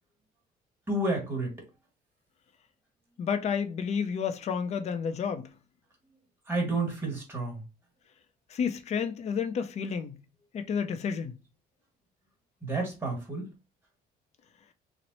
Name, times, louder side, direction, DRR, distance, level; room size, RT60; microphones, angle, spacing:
voice 1, 0.9-1.5 6.5-7.6 12.6-13.5, right 2 dB, 15° right, 1.6 m, -30 dB
voice 2, 3.2-5.5 8.5-10.2 10.5-11.4, left 6 dB, 40° left, 0.5 m, -30 dB
3.0 x 2.0 x 4.0 m
cardioid pair, 110°, 17 cm